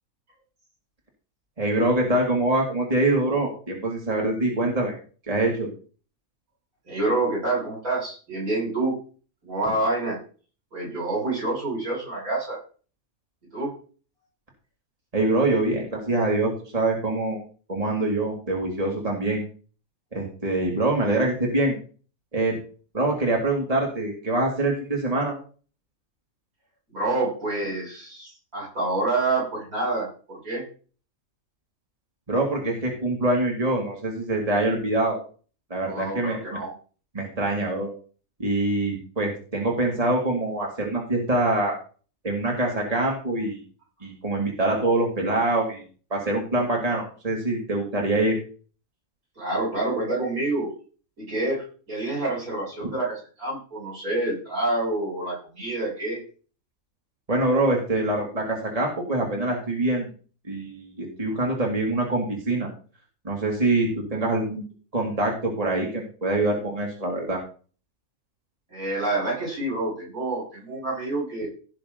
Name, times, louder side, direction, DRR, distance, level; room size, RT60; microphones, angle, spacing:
voice 1, 1.6-4.9 5.3-5.7 15.1-17.4 17.7-19.4 20.1-21.8 22.3-22.6 22.9-25.4 32.3-35.2 35.7-36.6 37.1-37.9 38.4-41.8 42.2-43.6 44.0-45.8 46.1-48.4 57.3-60.1 60.4-62.7 63.2-64.6 64.9-67.4, right 2 dB, 25° right, -1 dB, 2.8 m, -24 dB
voice 2, 6.9-8.9 9.4-10.2 10.7-12.6 13.5-13.7 26.9-30.6 35.9-36.7 49.4-50.7 51.2-56.2 68.7-71.5, right 2 dB, 70° right, -3 dB, 7.5 m, -27 dB
17.0 x 6.8 x 4.0 m, 0.39 s
omnidirectional pair, 1.5 m